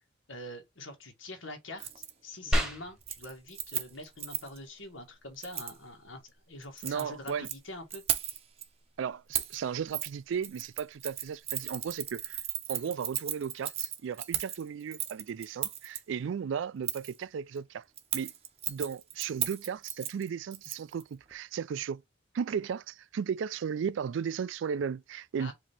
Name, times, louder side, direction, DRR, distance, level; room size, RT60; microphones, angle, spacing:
voice 1, 0.3-8.0 25.4-25.5, left 1 dB, 90° left, 1.6 m, -45 dB
Keys jangling, 1.8-2.1 2.5-2.7 3.0-4.6 5.4-5.8 6.6-7.6 7.9-8.6 9.3-9.6 9.9-10.1 10.4-16.0 16.8-17.2 18.0-21.0 21.3-21.4, right 11 dB, 30° right, 0.6 m, -36 dB
sound 1, 2.5-12.5, equal, 5° right, 1.1 m, -40 dB
voice 2, 6.8-7.5 9.0-12.4 12.7-17.8 18.1-18.3 18.7-22.0 22.3-25.5, right 7 dB, 75° right, 0.3 m, -35 dB
4.9 x 2.8 x 3.3 m
head